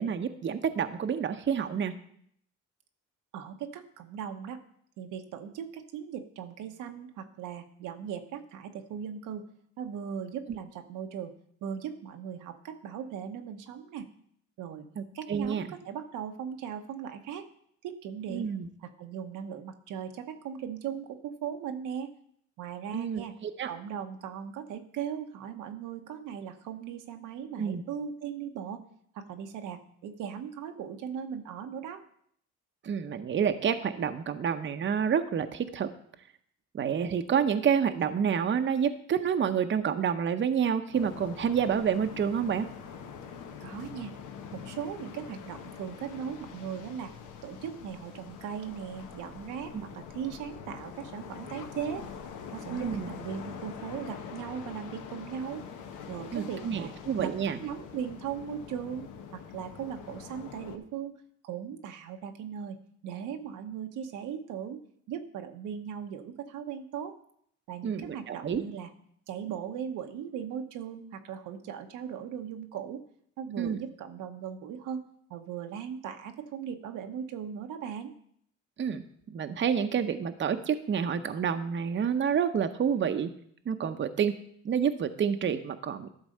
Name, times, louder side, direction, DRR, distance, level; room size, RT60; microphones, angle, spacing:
voice 1, 0.0-1.9 15.0-15.7 18.3-18.7 22.9-23.7 27.6-27.8 32.8-35.9 36.7-42.7 49.7-49.9 52.7-53.1 56.3-57.6 67.8-68.6 73.6-73.8 78.8-83.3 83.7-84.3 84.6-86.1, right 7 dB, 40° right, 8 dB, 0.7 m, -28 dB
voice 2, 3.3-4.6 5.0-9.4 9.8-11.3 11.6-14.1 14.6-14.8 15.1-17.5 17.8-18.5 18.8-22.1 22.6-23.3 23.7-28.8 29.1-32.0 43.6-44.1 44.5-47.1 47.4-52.1 52.5-55.7 56.1-56.9 57.2-61.2 61.4-62.8 63.0-67.2 67.7-68.9 69.3-73.0 73.4-75.0 75.3-78.1, right 8 dB, 90° right, 5 dB, 0.9 m, -38 dB
sound 1, 40.9-60.8, left 7 dB, 80° left, 1.0 m, -44 dB
11.5 x 4.0 x 6.5 m, 0.66 s
cardioid pair, 90°, 30 cm